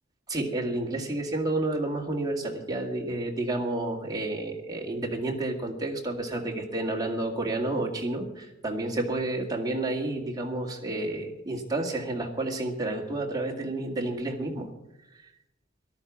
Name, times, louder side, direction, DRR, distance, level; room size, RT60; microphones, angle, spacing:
voice 1, 0.3-14.7 15.1-15.2, right 2 dB, 20° right, 0 dB, 2.1 m, -30 dB
14.0 x 12.5 x 6.1 m, 0.88 s
head